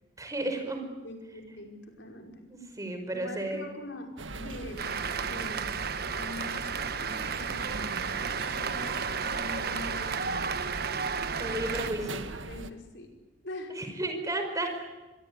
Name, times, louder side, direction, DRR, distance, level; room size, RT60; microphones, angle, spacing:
voice 1, 0.2-0.8 2.5-3.7 7.7-7.8 11.4-12.2 13.7-14.9, right 1 dB, 15° right, 5 dB, 5.1 m, -33 dB
voice 2, 1.0-2.4 3.1-4.9 5.2-5.9 6.1-10.5 11.4-11.7 12.3-13.2 13.4-13.8 14.2-14.3, left 2 dB, 65° left, 3 dB, 5.4 m, -44 dB
sound 1, 4.2-12.7, right 2 dB, 75° right, 1.7 m, -40 dB
Cheering / Applause, 4.8-11.9, right 6 dB, 55° right, 1.3 m, -33 dB
25.0 x 22.0 x 9.8 m, 1.1 s
head